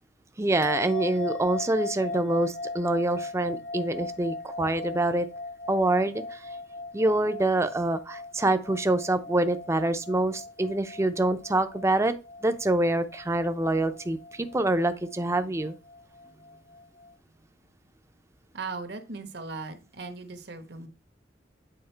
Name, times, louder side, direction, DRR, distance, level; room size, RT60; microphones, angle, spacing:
voice 1, 0.4-5.3 5.7-6.5 6.9-12.1 12.4-15.8, right 2 dB, 15° right, 0.5 m, -26 dB
sound 1, 0.6-17.1, left 2 dB, 45° left, 0.8 m, -39 dB
voice 2, 18.5-20.9, right 4 dB, 60° right, 1.1 m, -38 dB
8.8 x 3.7 x 4.5 m
head